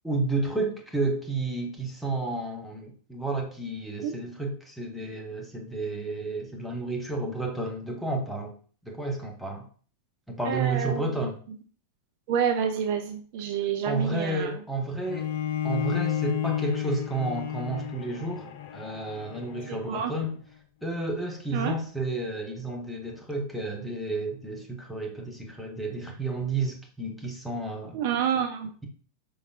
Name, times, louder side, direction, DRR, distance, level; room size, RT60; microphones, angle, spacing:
voice 1, 0.0-8.5 8.8-9.7 10.3-11.4 13.9-15.3 15.6-20.4 20.8-28.0, right 2 dB, ahead, 0 dB, 1.0 m, -31 dB
voice 2, 10.5-11.0 12.3-14.5 19.9-20.1 21.5-21.8 27.9-28.7, right 8 dB, 50° right, 6 dB, 0.5 m, -28 dB
Bowed string instrument, 15.0-20.3, left 10 dB, 55° left, 0.5 m, -32 dB
5.1 x 3.9 x 2.5 m, 0.42 s
figure-of-eight pair, 90°, 0 cm